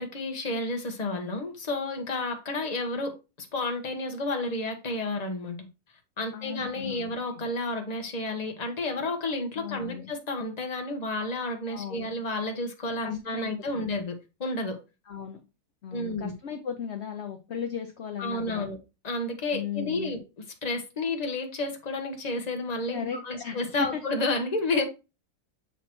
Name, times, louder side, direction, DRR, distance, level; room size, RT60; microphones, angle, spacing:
voice 1, 0.0-5.7 6.2-14.1 14.4-14.8 15.9-16.3 18.2-18.8 19.0-20.2 20.6-24.8, left 2 dB, 30° left, 1.0 m, -31 dB
voice 2, 6.3-7.2 9.5-10.1 11.7-12.1 13.0-13.9 15.1-15.4 15.8-18.7 19.5-20.2 22.9-24.0, left 8 dB, 55° left, 0.7 m, -37 dB
7.4 x 3.0 x 4.3 m
omnidirectional pair, 2.0 m